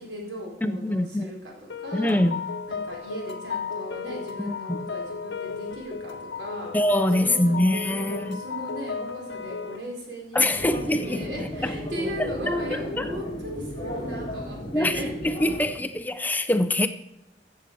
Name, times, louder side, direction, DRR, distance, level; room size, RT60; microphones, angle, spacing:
voice 1, 0.0-2.2 2.7-6.7 7.2-15.3, equal, 90° right, 4.7 m, -37 dB
voice 2, 0.6-1.3 1.9-2.5 4.4-4.9 6.7-8.4 10.3-11.7 12.5-13.1 14.7-16.9, left 1 dB, 10° left, 0.6 m, -25 dB
sound 1, 1.7-9.8, left 5 dB, 90° left, 0.8 m, -34 dB
sound 2, 10.6-15.7, left 1 dB, 25° left, 3.8 m, -34 dB
14.5 x 7.6 x 6.9 m
head